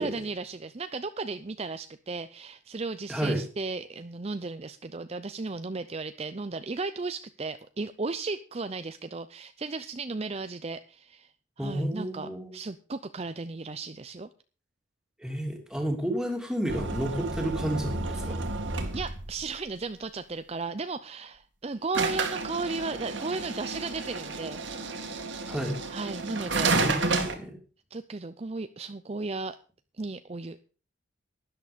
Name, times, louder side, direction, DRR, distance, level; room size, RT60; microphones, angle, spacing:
voice 1, 0.0-14.3 18.1-18.5 18.9-24.6 25.9-26.9 27.9-29.6 30.0-30.6, right 3 dB, 30° right, 11 dB, 0.5 m, -35 dB
voice 2, 3.1-3.4 11.6-12.5 15.2-18.4 25.4-25.7 26.7-27.6, right 1 dB, 5° right, 2 dB, 2.9 m, -31 dB
sound 1, 16.7-19.4 21.9-27.4, right 3 dB, 70° right, 2.2 m, -31 dB
12.5 x 11.0 x 5.1 m, 0.38 s
head